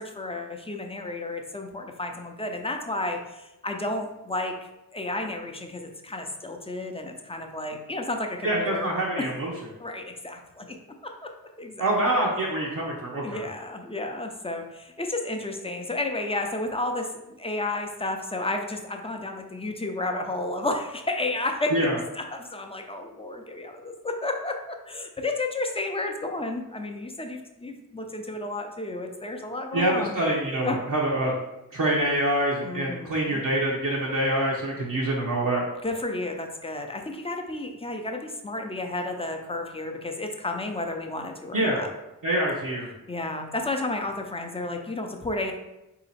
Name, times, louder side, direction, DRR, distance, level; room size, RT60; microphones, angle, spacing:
voice 1, 0.0-9.3 9.8-10.8 11.0-11.3 11.6-11.9 13.2-21.9 22.2-30.2 30.6-30.8 32.6-33.4 34.7-34.9 35.8-41.9 43.1-45.5, left 2 dB, 15° left, 3 dB, 0.6 m, -32 dB
voice 2, 8.4-9.5 11.8-13.4 21.7-22.0 29.7-31.3 31.7-35.6 41.5-41.8 42.2-42.9, right 1 dB, 65° right, -4 dB, 0.9 m, -25 dB
4.1 x 2.8 x 4.1 m, 0.94 s
cardioid pair, 60°, 35 cm